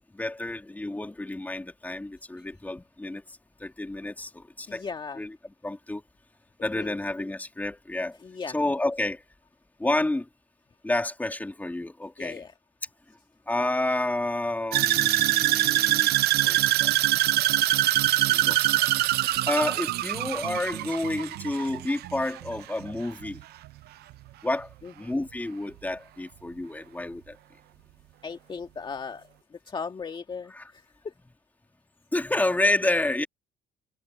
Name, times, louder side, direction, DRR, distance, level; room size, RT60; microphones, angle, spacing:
voice 1, 0.1-4.8 5.2-5.3 5.6-6.0 6.6-8.2 8.5-9.2 9.8-10.3 10.8-12.4 13.5-16.1 16.4-17.5 18.3-18.7 19.5-23.4 24.4-27.4 30.5-30.7 32.1-33.3, left 2 dB, 10° left, 2.8 m, -30 dB
voice 2, 4.7-5.2 6.6-7.0 8.2-8.6 12.2-12.5 24.8-24.9 28.2-31.1, left 5 dB, 30° left, 1.8 m, -37 dB
sound 1, 14.7-22.9 23.2-23.7 24.1-24.2, right 15 dB, 70° right, 0.6 m, -24 dB
cardioid pair, 110°, 17 cm